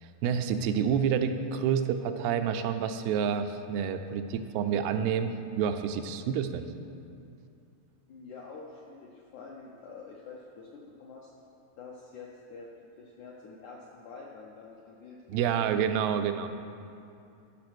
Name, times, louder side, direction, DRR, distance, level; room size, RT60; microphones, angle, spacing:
voice 1, 0.0-6.7 15.3-16.5, right 7 dB, 90° right, 8 dB, 2.6 m, -28 dB
voice 2, 8.1-11.3 11.8-12.7 13.0-15.6, left 4 dB, 80° left, -3 dB, 1.7 m, -47 dB
13.0 x 6.2 x 6.1 m, 2.5 s
omnidirectional pair, 4.6 m